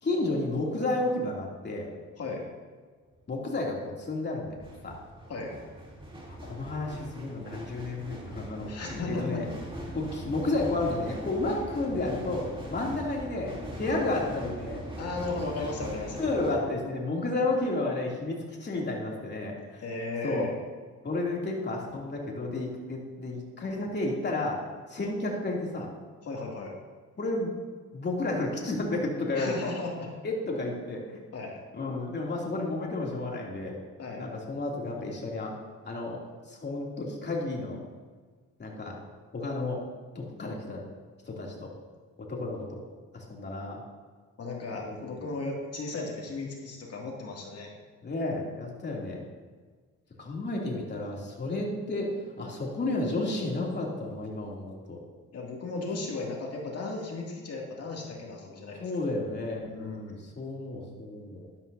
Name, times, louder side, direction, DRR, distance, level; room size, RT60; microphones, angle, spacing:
voice 1, 0.0-1.9 3.3-5.0 6.4-9.4 9.9-14.8 16.2-19.8 20.2-20.5 21.0-24.6 24.9-25.9 27.2-27.5 27.9-29.5 30.2-31.2 31.7-33.8 34.2-35.5 35.8-36.2 36.5-37.8 38.6-38.9 39.3-39.8 40.1-40.8 41.2-41.7 42.2-42.8 43.1-43.8 44.8-45.2 48.0-49.3 50.2-55.0 58.8-61.5, left 2 dB, 35° left, -2 dB, 2.9 m, -32 dB
sound 1, 3.1-3.4 4.4-16.6, right 1 dB, 15° right, 3.2 m, -41 dB
voice 2, 8.7-9.4 15.0-16.4 19.8-20.5 26.2-26.7 29.3-30.1 31.3-31.6 34.0-34.2 44.4-47.7 55.3-58.9 59.6-60.2, left 3 dB, 55° left, -1 dB, 2.5 m, -35 dB
13.0 x 11.5 x 2.8 m, 1.5 s
cardioid pair, 90°, 30 cm